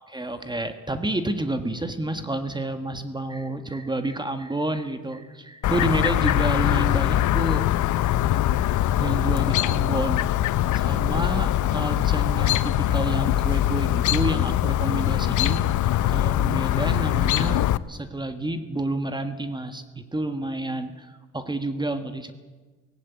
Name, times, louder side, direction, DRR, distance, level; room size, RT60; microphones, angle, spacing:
voice 1, 0.0-7.7 9.0-10.2 10.7-22.3, right 2 dB, 15° right, 8 dB, 1.5 m, -29 dB
Chirp tweet, 5.6-17.8, left 13 dB, 75° left, 0.7 m, -22 dB
18.0 x 16.0 x 9.2 m, 1.3 s
cardioid pair, 90°, 30 cm